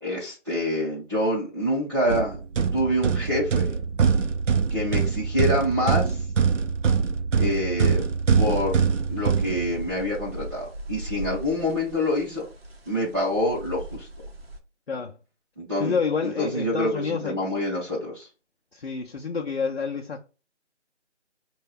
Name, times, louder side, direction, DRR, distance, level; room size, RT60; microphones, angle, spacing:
voice 1, 0.0-2.4 2.7-3.7 4.7-6.3 7.4-8.0 8.3-12.4 12.9-14.1 15.6-16.0 16.2-18.3, left 1 dB, 20° right, 0.8 m, -26 dB
sound 1, 2.1-10.1, right 6 dB, 85° right, 0.6 m, -24 dB
sound 2, 8.3-14.6, right 1 dB, 55° right, 0.8 m, -39 dB
voice 2, 15.8-17.4 18.7-20.2, left 5 dB, 55° left, 0.5 m, -28 dB
4.7 x 2.3 x 3.4 m
figure-of-eight pair, 175°, 36 cm